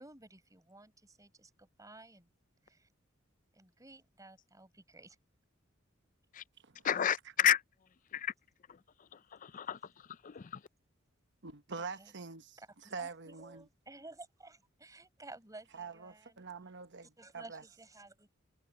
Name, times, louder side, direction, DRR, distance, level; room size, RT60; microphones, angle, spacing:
voice 1, 0.0-2.3 2.6-2.9 3.5-5.2 11.7-12.1 12.6-16.5 17.2-18.4, right 2 dB, 15° right, 5.2 m, -54 dB
voice 2, 6.8-7.6 8.1-8.3 8.7-8.8 9.1-10.6, left 9 dB, 40° left, 0.4 m, -32 dB
voice 3, 11.4-12.6 12.9-13.7 15.7-17.6, right 4 dB, 60° right, 1.1 m, -45 dB
head